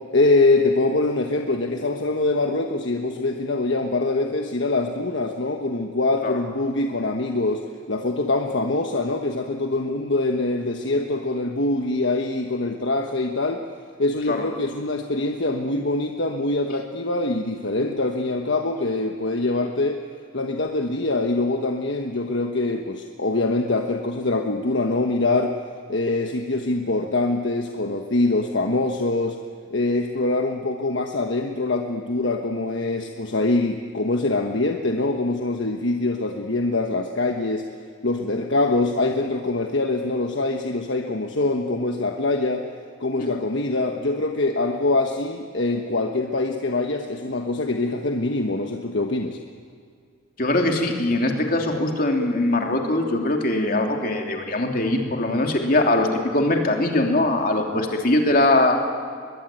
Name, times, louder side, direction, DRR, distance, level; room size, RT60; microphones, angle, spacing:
voice 1, 0.1-13.6 14.0-20.0 20.3-25.5 25.9-29.4 29.7-37.6 38.0-42.6 43.0-49.4, left 2 dB, 65° left, 4 dB, 1.3 m, -24 dB
voice 2, 50.4-58.8, left 1 dB, 45° left, 2 dB, 3.2 m, -21 dB
23.0 x 22.0 x 9.1 m, 2.2 s
head